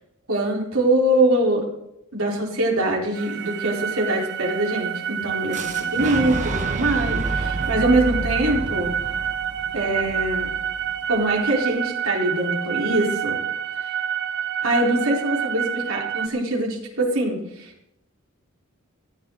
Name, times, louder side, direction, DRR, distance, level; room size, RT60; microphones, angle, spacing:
voice 1, 0.3-1.7 2.1-8.9 9.7-10.5 11.1-13.4 13.8-13.9 14.6-17.7, right 1 dB, 75° right, -1 dB, 4.1 m, -23 dB
sound 1, 3.1-16.3, right 9 dB, 55° right, 0.6 m, -28 dB
Boom, 5.5-11.4, right 2 dB, 35° right, 1.1 m, -30 dB
18.0 x 14.5 x 3.9 m, 0.82 s
head